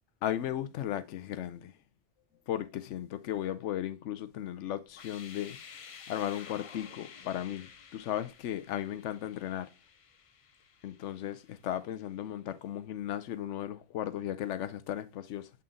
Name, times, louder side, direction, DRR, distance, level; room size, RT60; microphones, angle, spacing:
voice 1, 0.2-1.7 2.5-9.7 10.8-15.5, left 11 dB, 90° left, 0.9 m, -36 dB
sound 1, 4.9-11.8, left 6 dB, 50° left, 0.4 m, -52 dB
7.1 x 3.8 x 3.6 m
omnidirectional pair, 1.2 m